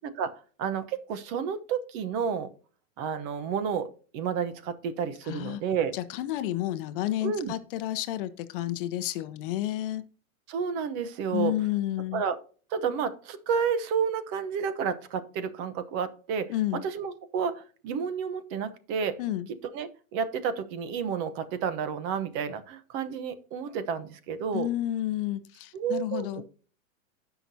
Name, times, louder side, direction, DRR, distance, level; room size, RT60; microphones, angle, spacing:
voice 1, 0.6-2.5 3.0-3.9 4.1-5.9 7.2-7.5 10.5-11.5 12.1-12.4 12.7-19.2 19.7-24.7 25.7-26.5, right 7 dB, 35° right, 12 dB, 0.9 m, -31 dB
voice 2, 5.2-5.6 5.9-10.0 11.3-12.2 16.5-16.8 19.2-19.5 24.5-26.4, left 14 dB, 40° left, 12 dB, 0.8 m, -30 dB
16.5 x 5.9 x 2.7 m, 0.40 s
hypercardioid pair, 140°, 42 cm